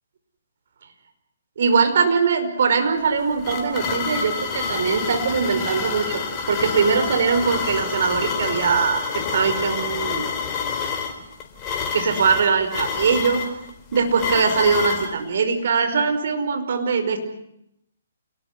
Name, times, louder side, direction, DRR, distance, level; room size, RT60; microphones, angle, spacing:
voice 1, 1.6-10.3 11.9-13.4 13.9-17.2, right 5 dB, 60° right, 7 dB, 5.1 m, -21 dB
sound 1, 3.0-15.1, left 6 dB, 25° left, 4.3 m, -28 dB
28.0 x 19.5 x 9.6 m, 0.81 s
figure-of-eight pair, 135°, 0 cm